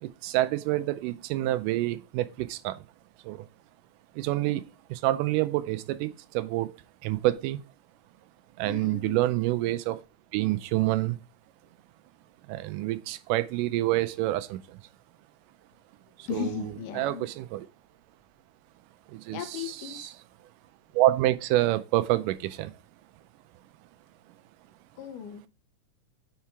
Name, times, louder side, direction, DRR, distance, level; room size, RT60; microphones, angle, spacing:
voice 1, 0.0-2.8 3.2-3.5 4.2-4.7 4.9-6.7 7.0-7.6 8.6-10.0 10.3-11.2 12.5-14.8 16.2-16.6 17.0-17.7 19.1-20.1 20.9-22.7, right 16 dB, 85° right, 2.1 m, -27 dB
voice 2, 8.6-9.2 16.3-17.3 19.3-20.1 25.0-25.5, left 8 dB, 80° left, 2.4 m, -36 dB
5.7 x 4.8 x 4.5 m
omnidirectional pair, 3.7 m